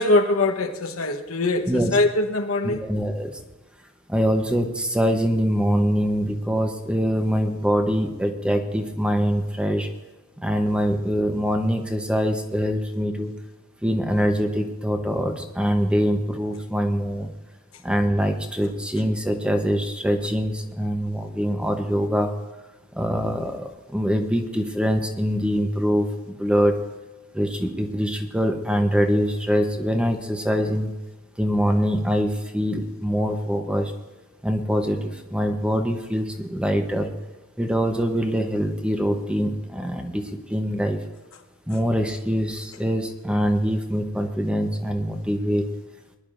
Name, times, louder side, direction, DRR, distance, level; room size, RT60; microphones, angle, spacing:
voice 1, 0.0-2.8, left 2 dB, 80° left, 6 dB, 1.1 m, -22 dB
voice 2, 2.6-3.4 4.1-9.9 10.4-13.3 13.8-17.3 17.8-22.3 22.9-26.8 27.3-30.9 31.4-33.9 34.4-37.1 37.6-41.0 41.7-45.7, equal, 5° right, 5 dB, 0.8 m, -24 dB
22.0 x 11.0 x 2.6 m, 1.2 s
head